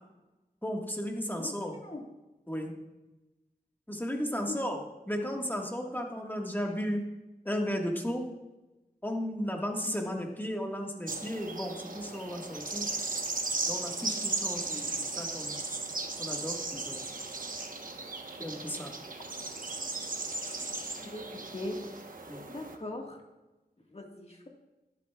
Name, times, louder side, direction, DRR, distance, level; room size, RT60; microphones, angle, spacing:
voice 1, 0.6-1.8 2.5-2.7 3.9-7.1 7.4-8.3 9.0-12.9 13.7-15.6 16.2-17.1 18.4-18.9 22.3-22.5, equal, 10° left, 1 dB, 1.6 m, -34 dB
sound 1, 11.1-22.8, right 3 dB, 60° right, 1.1 m, -36 dB
voice 2, 22.5-23.2 23.9-24.5, left 2 dB, 40° left, 1 dB, 1.6 m, -39 dB
12.5 x 11.5 x 2.4 m, 1.1 s
wide cardioid pair, 60°, 16 cm